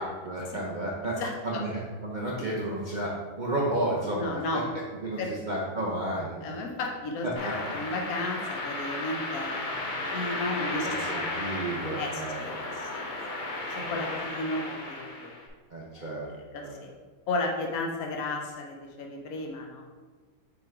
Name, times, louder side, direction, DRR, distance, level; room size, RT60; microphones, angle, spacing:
voice 1, 0.0-1.2 1.4-4.4 5.0-6.6 7.2-7.5 10.8-12.4 13.8-13.9 15.7-16.3 16.6-16.8, right 1 dB, 75° right, -4 dB, 0.4 m, -32 dB
voice 2, 1.2-1.6 4.2-4.6 5.2-5.3 6.4-11.2 12.0-13.0 13.7-15.3 15.9-16.1 16.5-16.9 17.3-19.8, left 2 dB, 55° left, 1 dB, 1.1 m, -34 dB
sound 1, 7.4-15.5, left 2 dB, 90° left, 0.4 m, -34 dB
5.9 x 3.6 x 4.5 m, 1.4 s
omnidirectional pair, 2.2 m